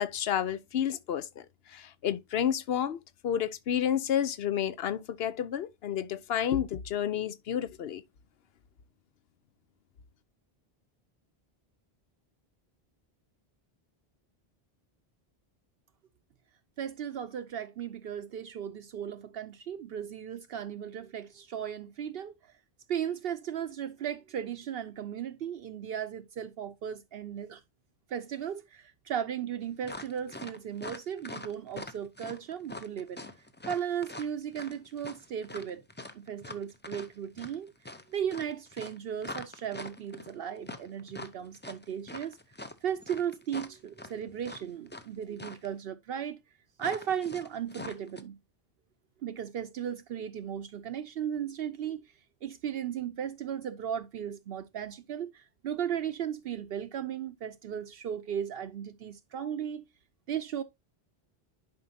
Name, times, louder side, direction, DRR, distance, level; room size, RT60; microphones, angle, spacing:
voice 1, 0.0-8.0, left 9 dB, 75° left, 0.9 m, -31 dB
voice 2, 16.8-22.4 22.9-27.6 28.1-33.2 33.6-35.8 36.1-37.7 38.1-42.4 42.8-46.4 46.8-48.4 49.2-52.1 52.4-59.8 60.3-60.6, right 9 dB, 70° right, 0.8 m, -36 dB
sound 1, 29.8-45.1 45.4-45.7 46.8-48.2, left 2 dB, 15° left, 0.6 m, -43 dB
10.5 x 5.2 x 2.8 m
omnidirectional pair, 1.0 m